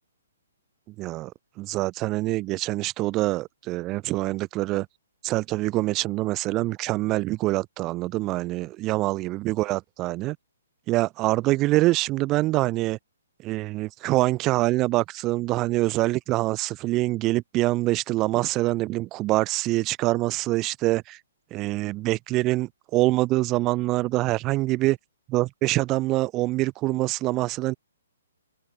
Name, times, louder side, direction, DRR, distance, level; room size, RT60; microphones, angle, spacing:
voice 1, 1.0-1.3 1.6-4.9 5.2-10.4 10.9-13.0 13.4-21.2 21.5-25.0 25.3-27.7, right 19 dB, 15° right, 0.6 m, -25 dB
hypercardioid pair, 170°, 0 cm